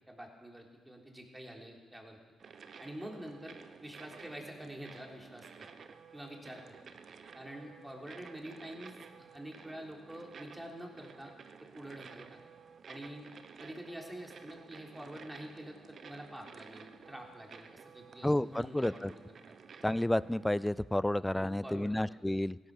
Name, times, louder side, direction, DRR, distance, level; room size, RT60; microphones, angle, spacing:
voice 1, 0.1-2.2 2.8-5.7 6.1-6.9 7.3-11.3 11.6-12.4 12.9-13.3 13.6-19.2 19.5-19.6 21.3-22.2, right 1 dB, 10° right, 0 dB, 3.6 m, -47 dB
sound 1, 2.4-20.7, right 6 dB, 55° right, 0.9 m, -53 dB
voice 2, 18.2-19.1 19.8-22.6, left 1 dB, 10° left, 20 dB, 0.4 m, -31 dB
16.0 x 11.5 x 6.6 m, 1.3 s
hypercardioid pair, 45°, 0 cm